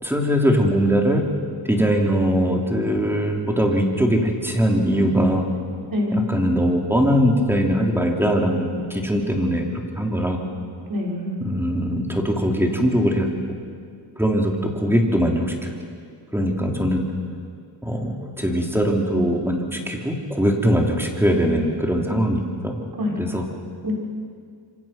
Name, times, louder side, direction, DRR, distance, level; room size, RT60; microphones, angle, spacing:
voice 1, 0.0-1.2 1.7-5.5 6.1-10.4 11.4-13.3 14.2-15.7 16.3-17.0 17.8-22.8 23.2-23.5, equal, 5° right, 1 dB, 3.8 m, -21 dB
voice 2, 5.9-6.3 10.9-11.4 23.0-23.4 23.8-23.9, left 1 dB, 45° right, -2 dB, 5.9 m, -25 dB
26.5 x 25.5 x 6.1 m, 2.2 s
cardioid pair, 85°, 49 cm